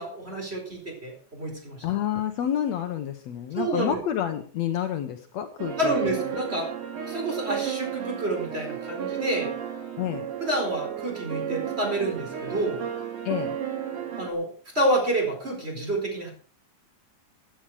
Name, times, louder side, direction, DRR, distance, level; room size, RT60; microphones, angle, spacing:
voice 1, 0.0-1.8 3.5-4.0 5.8-6.7 7.1-9.5 10.4-12.8 14.2-14.5 14.7-16.3, right 1 dB, 20° right, 2 dB, 4.6 m, -28 dB
voice 2, 1.8-6.2 10.0-10.3 13.3-13.6, left 10 dB, 70° left, 7 dB, 2.0 m, -29 dB
sound 1, 5.6-14.3, right 9 dB, 90° right, 3.8 m, -33 dB
15.0 x 10.5 x 4.9 m, 0.42 s
omnidirectional pair, 3.5 m